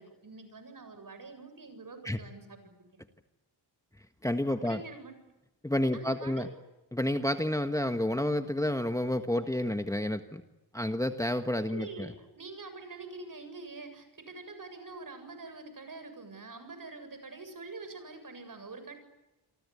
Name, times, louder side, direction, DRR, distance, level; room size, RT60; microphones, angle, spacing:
voice 1, 0.0-2.9 4.6-5.2 5.9-6.6 11.7-19.0, right 3 dB, 50° right, 9 dB, 7.6 m, -45 dB
voice 2, 4.2-4.8 5.6-6.5 6.9-10.4 10.7-12.1, left 1 dB, 10° left, 7 dB, 1.4 m, -30 dB
28.5 x 24.5 x 8.4 m, 1.0 s
wide cardioid pair, 95°, 42 cm